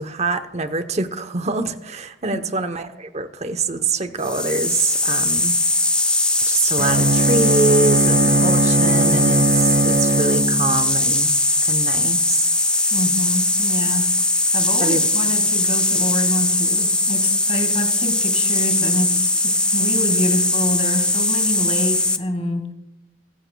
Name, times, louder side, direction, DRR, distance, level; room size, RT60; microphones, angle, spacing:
voice 1, 0.0-5.6 6.5-11.3 11.6-12.5 14.8-15.0, right 3 dB, 40° right, 0.8 m, -25 dB
sound 1, 4.2-22.2, left 2 dB, 5° left, 0.6 m, -20 dB
Bowed string instrument, 6.8-11.0, right 3 dB, 60° right, 1.3 m, -19 dB
voice 2, 12.9-14.1 14.5-22.7, left 1 dB, 35° left, 2.0 m, -26 dB
22.0 x 16.5 x 2.3 m
head